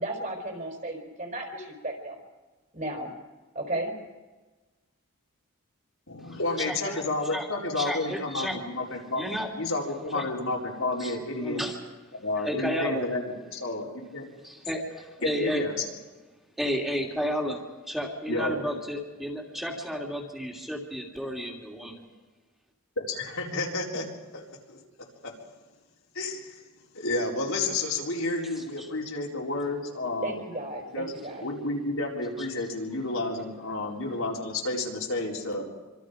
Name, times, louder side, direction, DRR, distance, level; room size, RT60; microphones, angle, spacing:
voice 1, 0.0-2.2 2.7-3.1 3.5-3.9 30.2-31.5, right 1 dB, 35° right, 2 dB, 4.5 m, -34 dB
voice 2, 6.1-9.2 9.6-11.6 12.2-14.3 15.2-15.7 18.3-18.5 23.0-24.8 25.2-25.3 26.1-26.6 26.9-30.4 30.9-31.1 31.4-35.6, left 2 dB, 75° left, -2 dB, 4.4 m, -31 dB
voice 3, 6.7-7.0 7.3-7.5 7.8-8.6 9.2-9.5 10.1-10.2 11.0-11.1 11.4-11.7 12.4-13.1 14.4-15.7 16.6-17.6 17.9-22.0 28.8-28.9, equal, ahead, -1 dB, 2.9 m, -32 dB
26.5 x 25.5 x 5.2 m, 1.3 s
head